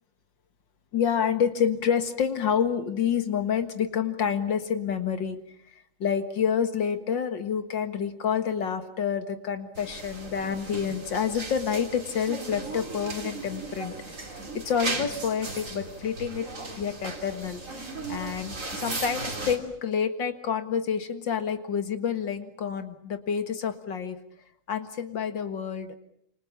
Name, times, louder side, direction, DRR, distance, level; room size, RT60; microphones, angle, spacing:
voice 1, 0.9-16.5 16.8-24.2 24.7-26.0, left 7 dB, 60° left, 9 dB, 2.3 m, -28 dB
sound 1, 9.8-19.6, right 3 dB, 35° right, 3.3 m, -37 dB
28.0 x 26.0 x 7.3 m, 0.71 s
omnidirectional pair, 2.3 m